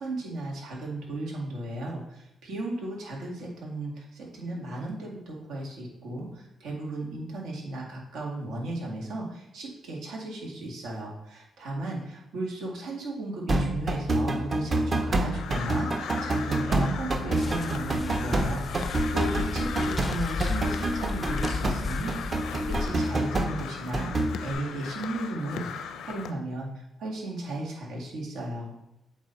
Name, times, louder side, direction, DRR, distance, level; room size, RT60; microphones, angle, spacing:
voice 1, 0.0-28.8, right 1 dB, 85° right, -2 dB, 1.9 m, -35 dB
sound 1, 13.5-24.5, right 2 dB, 35° right, 0.7 m, -28 dB
Crow, 15.3-26.3, left 7 dB, 85° left, 0.5 m, -38 dB
sound 2, 17.3-22.9, left 3 dB, 25° left, 0.4 m, -34 dB
8.1 x 3.1 x 4.0 m, 0.89 s
cardioid pair, 110°, 0 cm